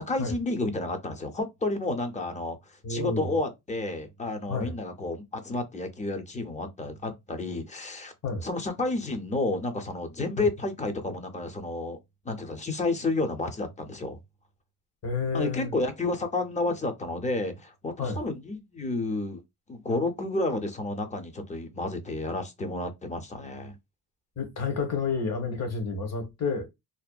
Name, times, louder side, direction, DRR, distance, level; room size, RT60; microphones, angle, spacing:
voice 1, 0.1-8.1 8.4-12.0 12.3-14.2 15.3-19.4 19.7-23.8, left 2 dB, 20° left, 0.4 m, -31 dB
voice 2, 2.8-3.3 4.5-4.8 8.2-8.4 10.4-10.5 15.0-15.7 18.0-18.2 24.4-26.7, left 4 dB, 45° left, 0.8 m, -30 dB
2.6 x 2.1 x 2.2 m
wide cardioid pair, 145°, 39 cm